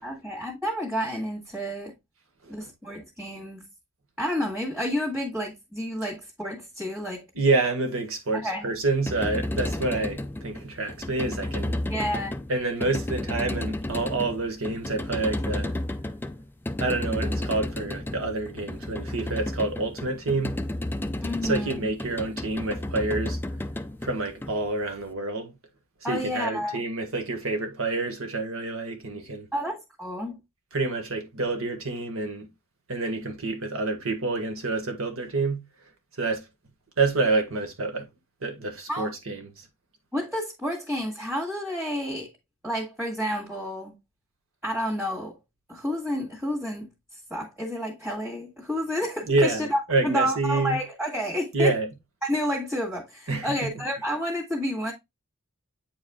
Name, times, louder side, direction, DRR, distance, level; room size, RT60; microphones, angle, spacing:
voice 1, 0.0-2.0 2.5-3.7 4.2-7.3 8.3-8.7 11.9-12.3 21.2-21.9 26.0-26.8 29.5-30.4 38.9-39.1 40.1-42.3 42.6-44.0 44.6-45.4 45.7-46.9 47.3-51.8 52.2-54.9, equal, 5° right, 1.9 m, -30 dB
voice 2, 7.3-11.8 12.5-15.7 16.8-20.6 21.4-23.4 24.0-25.5 26.1-29.5 30.7-32.5 32.9-35.6 36.2-36.4 37.0-38.1 38.4-39.7 49.3-50.8 51.5-51.9 53.3-53.5, right 3 dB, 70° right, 1.7 m, -28 dB
sound 1, 8.8-25.0, left 1 dB, 10° left, 0.4 m, -32 dB
8.6 x 4.7 x 2.3 m
head